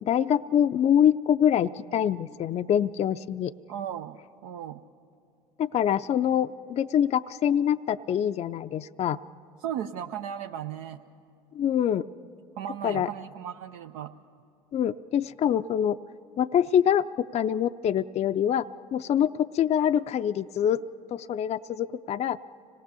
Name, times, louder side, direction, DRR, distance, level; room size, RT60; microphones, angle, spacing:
voice 1, 0.0-3.5 5.6-9.2 11.5-12.1 12.8-13.1 14.7-16.0 16.4-18.7 18.9-20.8 21.1-22.4, left 9 dB, 40° left, 9 dB, 0.4 m, -25 dB
voice 2, 3.7-4.8 9.6-11.0 12.6-14.1, right 9 dB, 80° right, 5 dB, 0.6 m, -36 dB
25.5 x 18.5 x 6.9 m, 2.6 s
hypercardioid pair, 80°, 17 cm